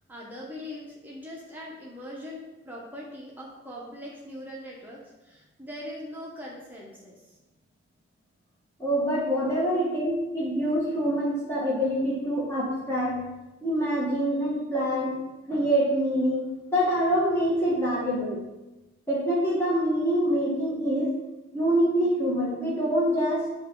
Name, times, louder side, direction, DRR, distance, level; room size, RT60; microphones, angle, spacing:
voice 1, 0.1-7.3 9.6-9.7, left 1 dB, 10° right, -4 dB, 0.9 m, -41 dB
voice 2, 8.8-13.2 13.6-15.2 15.5-16.4 16.7-18.4 19.1-21.2 21.5-23.5, equal, 15° left, -7 dB, 1.3 m, -25 dB
6.5 x 3.2 x 4.5 m, 1.0 s
head